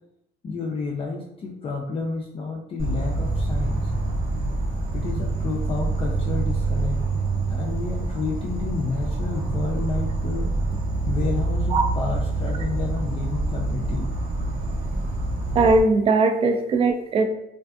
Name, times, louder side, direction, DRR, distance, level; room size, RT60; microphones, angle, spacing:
voice 1, 0.4-3.9 4.9-7.0 7.5-10.7 11.1-14.1, left 4 dB, 35° left, -2 dB, 0.4 m, -30 dB
Insect, 2.8-15.8, right 2 dB, 60° right, 0.7 m, -26 dB
voice 2, 15.5-17.2, right 3 dB, 35° right, 5 dB, 0.3 m, -19 dB
2.5 x 2.4 x 2.3 m, 0.79 s
cardioid pair, 110°, 17 cm